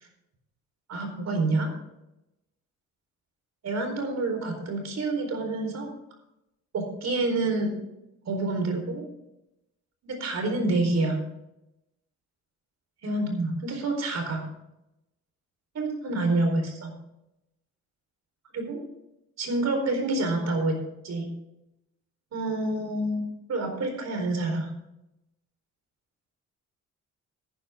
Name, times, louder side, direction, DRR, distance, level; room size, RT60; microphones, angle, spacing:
voice 1, 0.9-1.7 3.6-5.9 6.7-7.7 8.3-9.0 10.0-11.2 13.0-14.4 15.7-16.9 18.5-18.8 19.4-20.8 21.0-21.3 22.3-23.2 23.5-24.7, right 2 dB, 60° right, 4 dB, 4.3 m, -27 dB
14.5 x 10.0 x 3.7 m, 0.89 s
cardioid pair, 90°, 30 cm